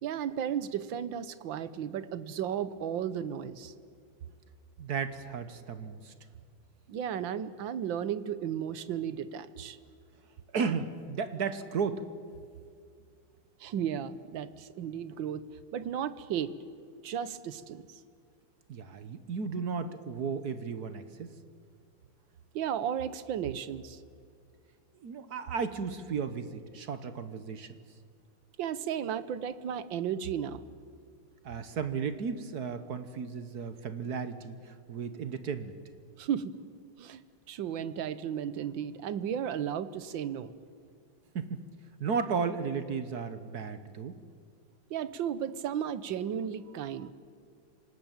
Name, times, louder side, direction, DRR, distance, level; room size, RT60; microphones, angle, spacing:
voice 1, 0.0-3.7 6.9-9.8 13.6-15.4 15.7-16.5 17.0-17.9 22.5-24.0 28.6-30.6 36.2-36.5 37.0-37.2 37.5-40.5 44.9-47.1, right 9 dB, 70° right, 15 dB, 1.7 m, -34 dB
voice 2, 4.8-6.1 10.5-12.0 18.7-21.3 24.9-27.8 31.4-35.7 41.3-41.6 42.0-44.2, right 5 dB, 55° right, 11 dB, 1.5 m, -34 dB
26.5 x 18.5 x 8.9 m, 2.3 s
omnidirectional pair, 2.2 m